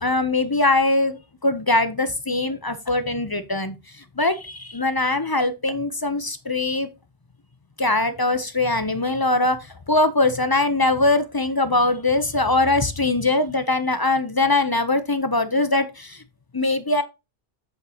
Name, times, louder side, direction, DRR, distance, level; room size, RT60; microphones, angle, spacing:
voice 1, 0.0-3.8 4.2-6.9 7.8-16.2 16.5-17.0, left 2 dB, 25° left, 0.5 m, -22 dB
8.1 x 6.8 x 2.8 m
omnidirectional pair, 1.3 m